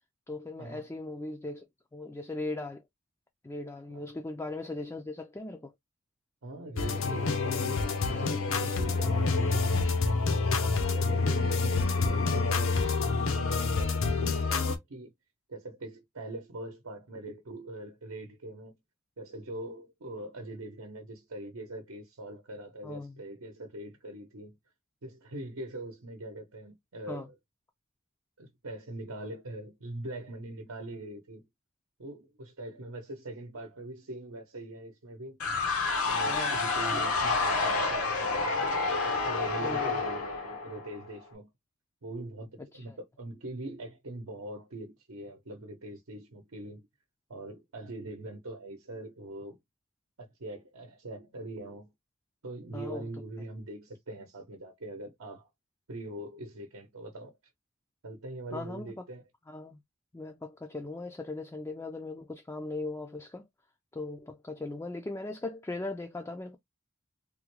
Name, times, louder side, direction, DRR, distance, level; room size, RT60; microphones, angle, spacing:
voice 1, 0.3-1.7 1.9-2.8 3.4-5.7 22.8-23.2 27.1-27.3 36.3-36.6 36.9-37.1 39.6-39.9 42.6-43.0 52.7-53.0 58.5-59.0 59.5-59.8 60.1-63.4 63.9-66.6, left 2 dB, 15° left, 0.3 m, -38 dB
voice 2, 6.4-15.1 15.5-18.7 19.2-24.6 25.0-27.3 28.4-31.4 32.0-35.4 36.0-41.5 42.0-46.9 47.3-49.6 50.2-51.9 52.4-55.5 55.9-57.4 58.0-59.2, right 1 dB, 75° right, 0.8 m, -42 dB
sound 1, 6.8-14.8, left 4 dB, 65° left, 0.7 m, -27 dB
sound 2, 35.4-41.2, left 3 dB, 90° left, 1.0 m, -29 dB
3.5 x 2.2 x 3.0 m
head